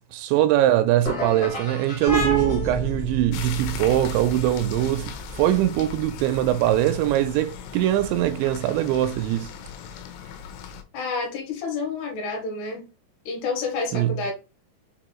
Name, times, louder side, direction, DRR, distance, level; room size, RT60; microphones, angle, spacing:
voice 1, 0.1-9.5 13.9-14.1, right 13 dB, 85° right, 2.7 m, -22 dB
sound 1, 1.0-3.1, left 1 dB, 50° left, 1.2 m, -34 dB
sound 2, 2.1-9.4, equal, 10° left, 0.4 m, -32 dB
sound 3, 3.3-10.8, left 8 dB, 90° left, 3.1 m, -39 dB
voice 2, 10.9-12.9 13.3-14.3, left 4 dB, 75° left, 3.1 m, -29 dB
6.8 x 2.6 x 3.0 m
omnidirectional pair, 5.2 m